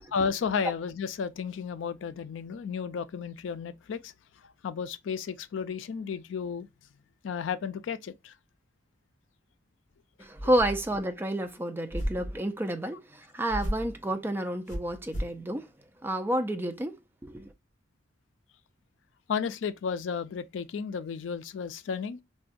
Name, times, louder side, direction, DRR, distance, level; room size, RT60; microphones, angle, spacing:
voice 1, 0.1-4.1 4.6-6.7 7.2-8.3 19.3-22.2, left 6 dB, 80° left, 0.4 m, -33 dB
voice 2, 10.2-15.7 16.0-17.0 17.2-17.5, right 1 dB, 10° right, 0.4 m, -30 dB
sound 1, 10.4-11.0 11.9-12.4 13.5-13.9 14.7-15.4, equal, 40° left, 1.3 m, -34 dB
3.7 x 2.2 x 2.4 m
head